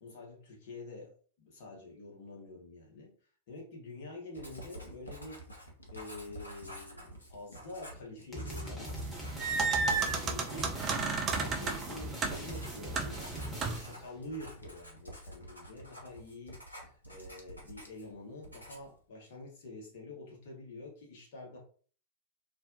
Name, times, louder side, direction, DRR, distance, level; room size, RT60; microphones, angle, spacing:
voice 1, 0.0-3.1 3.5-5.4 5.9-9.0 9.5-10.7 11.3-21.6, left 2 dB, 55° left, -1 dB, 1.0 m, -47 dB
Writing, 4.3-18.1 18.4-19.0, equal, 85° left, 0.6 m, -49 dB
sound 1, 8.3-14.1, equal, 5° left, 1.0 m, -42 dB
sound 2, 9.0-14.0, right 4 dB, 30° right, 0.4 m, -33 dB
2.5 x 2.1 x 2.6 m, 0.43 s
figure-of-eight pair, 90°, 0 cm